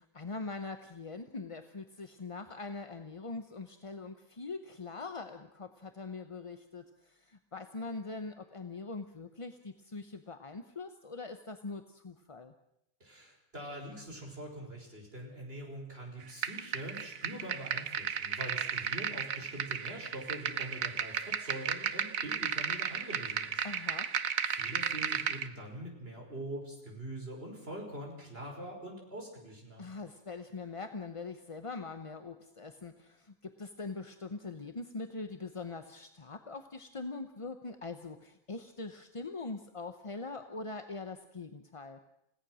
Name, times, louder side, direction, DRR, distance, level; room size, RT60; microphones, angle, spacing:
voice 1, 0.0-12.5 23.6-24.1 29.8-42.0, left 3 dB, 25° left, 7 dB, 0.8 m, -42 dB
voice 2, 13.0-23.6 24.5-29.9, right 1 dB, 40° right, 1 dB, 5.5 m, -44 dB
sound 1, 16.4-25.5, right 7 dB, 70° right, 1.4 m, -34 dB
29.5 x 17.5 x 6.3 m, 0.81 s
omnidirectional pair, 1.5 m